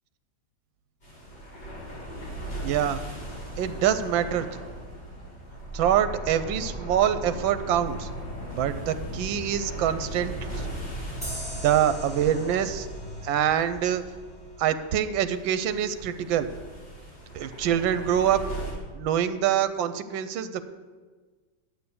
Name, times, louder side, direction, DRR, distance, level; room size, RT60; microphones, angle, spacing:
sound 1, 1.0-18.7, right 1 dB, 60° left, 5.2 m, -38 dB
voice 1, 2.6-3.0 3.6-4.6 5.7-8.1 8.5-10.6 11.6-12.9 13.2-14.0 14.6-16.5 17.3-18.4 18.9-20.6, right 10 dB, 85° right, 11 dB, 1.4 m, -25 dB
sound 2, 11.2-14.6, equal, 5° left, 2.8 m, -42 dB
9.3 x 8.2 x 6.8 m, 1.4 s
omnidirectional pair, 2.1 m